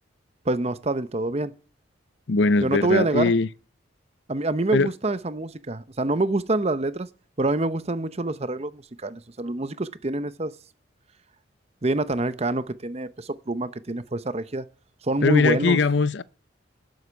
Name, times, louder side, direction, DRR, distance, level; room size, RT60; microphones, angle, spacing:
voice 1, 0.5-1.5 2.6-3.3 4.3-7.1 7.4-10.5 11.8-14.7 15.0-15.8, right 2 dB, 30° right, 0.7 m, -26 dB
voice 2, 2.3-3.5 4.7-4.9 15.2-16.2, left 3 dB, 60° left, 0.6 m, -21 dB
12.0 x 7.9 x 8.4 m
head